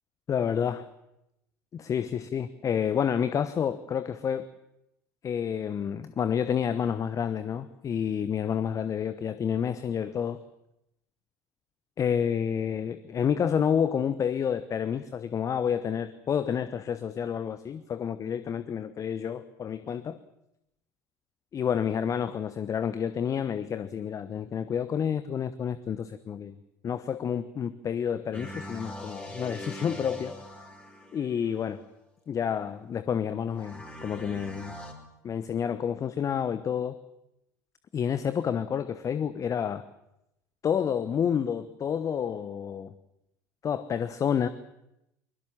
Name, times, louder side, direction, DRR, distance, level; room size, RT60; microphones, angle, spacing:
voice 1, 0.3-0.9 1.7-4.5 5.2-10.4 12.0-20.2 21.5-26.5 26.8-30.3 31.1-31.8 32.3-34.8 35.2-37.0 37.9-39.8 40.6-42.9 43.6-44.5, left 8 dB, 35° left, 13 dB, 1.0 m, -29 dB
sound 1, 28.3-31.5 33.5-34.9, left 1 dB, 15° left, 4.4 m, -41 dB
22.5 x 21.5 x 7.4 m, 0.85 s
figure-of-eight pair, 65°, 10 cm